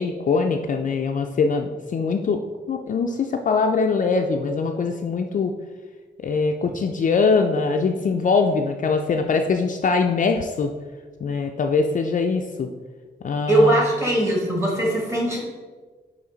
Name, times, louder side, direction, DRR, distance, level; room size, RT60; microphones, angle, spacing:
voice 1, 0.0-2.4 2.7-5.5 6.2-10.7 11.2-12.7 13.2-13.8, left 4 dB, 45° left, 4 dB, 0.4 m, -22 dB
voice 2, 13.5-15.4, right 1 dB, 15° right, -2 dB, 1.6 m, -20 dB
9.2 x 3.1 x 3.9 m, 1.4 s
wide cardioid pair, 150°, 18 cm